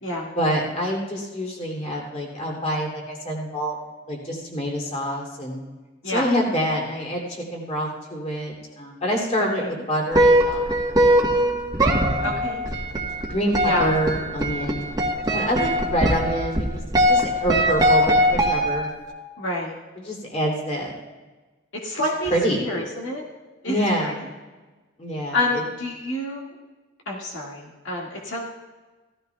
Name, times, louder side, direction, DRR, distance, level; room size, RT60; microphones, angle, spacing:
voice 1, 0.3-3.8 4.1-5.6 6.1-11.3 11.8-12.4 13.3-14.9 15.3-16.8 17.1-18.9 20.0-20.9 22.3-22.7 23.6-24.2 25.0-25.6, equal, 35° left, -1 dB, 2.7 m, -26 dB
voice 2, 9.4-9.7 12.2-12.6 13.6-14.0 19.4-19.7 21.7-23.2 23.6-24.1 25.3-26.5 27.1-28.4, left 1 dB, 75° left, -2 dB, 2.0 m, -28 dB
sound 1, 10.1-19.1, equal, 20° right, 1.3 m, -21 dB
16.5 x 14.5 x 2.3 m, 1.3 s
head